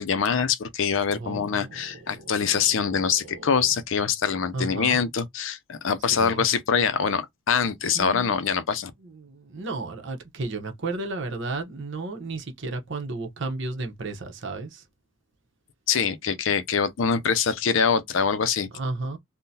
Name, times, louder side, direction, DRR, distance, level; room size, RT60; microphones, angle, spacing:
voice 1, 0.0-8.9 15.9-18.7, left 6 dB, 60° left, 0.5 m, -24 dB
voice 2, 1.1-1.8 2.1-2.5 4.5-5.0 6.1-6.5 7.9-8.4 9.0-14.8 18.8-19.2, right 3 dB, 60° right, 0.8 m, -33 dB
3.7 x 2.1 x 2.7 m
head